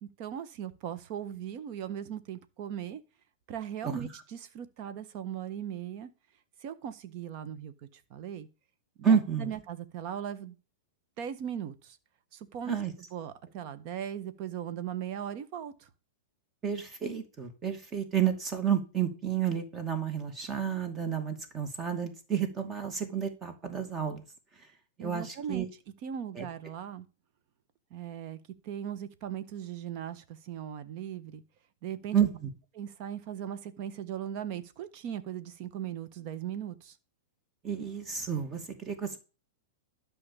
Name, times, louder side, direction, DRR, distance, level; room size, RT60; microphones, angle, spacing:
voice 1, 0.0-3.0 3.5-6.1 6.6-8.5 9.0-10.5 11.2-12.0 12.3-12.8 13.1-15.9 25.0-25.7 26.0-27.1 27.9-31.4 31.8-32.2 32.7-37.0, right 9 dB, 50° right, 1.5 m, -38 dB
voice 2, 9.0-9.5 12.7-12.9 16.6-24.2 24.5-24.7 25.0-25.7 26.4-26.5 32.1-32.3 37.6-39.2, right 8 dB, 25° right, 2.4 m, -30 dB
12.0 x 5.7 x 7.1 m
hypercardioid pair, 105°, 0 cm